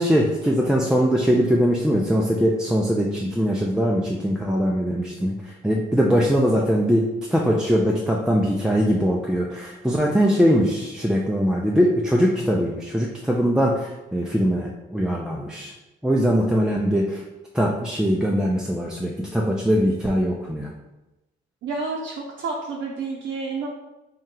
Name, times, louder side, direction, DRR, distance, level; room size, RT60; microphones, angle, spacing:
voice 1, 0.0-15.7 16.0-17.2 17.5-20.7, equal, 5° right, -2 dB, 0.4 m, -21 dB
voice 2, 21.6-23.7, right 4 dB, 65° right, -2 dB, 0.6 m, -29 dB
3.0 x 2.8 x 3.7 m, 1.0 s
cardioid pair, 90°, 20 cm